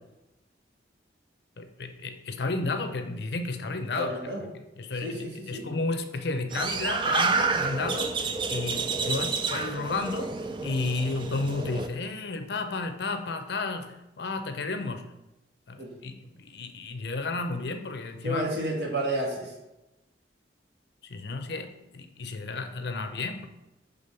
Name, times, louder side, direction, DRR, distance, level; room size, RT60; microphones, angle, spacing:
voice 1, 1.6-4.1 4.8-10.3 10.6-15.1 15.7-18.5 21.0-23.5, left 3 dB, 65° left, 8 dB, 0.6 m, -32 dB
voice 2, 4.0-4.5 4.9-5.7 15.8-15.9 18.2-19.5, right 1 dB, 65° right, -1 dB, 1.5 m, -31 dB
sound 1, 6.5-11.9, right 4 dB, 25° right, 0.3 m, -29 dB
5.3 x 3.5 x 5.5 m, 0.96 s
head